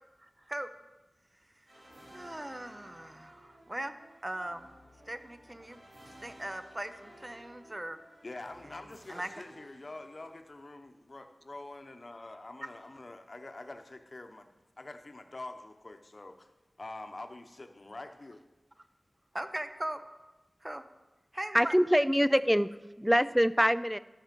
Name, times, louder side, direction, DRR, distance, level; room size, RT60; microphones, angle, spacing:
voice 1, 0.2-0.7 2.1-4.7 5.1-5.8 6.2-8.0 8.6-9.3 12.6-12.7 19.3-20.0 20.6-20.8 21.3-21.7, right 1 dB, 25° right, 10 dB, 0.7 m, -39 dB
sound 1, 1.7-10.5, equal, 85° right, 3.1 m, -56 dB
voice 2, 8.2-16.5 16.8-18.4, left 2 dB, 50° left, 7 dB, 0.9 m, -46 dB
voice 3, 21.5-24.0, equal, ahead, 16 dB, 0.3 m, -25 dB
13.0 x 6.9 x 5.3 m, 1.1 s
wide cardioid pair, 65°, 0 cm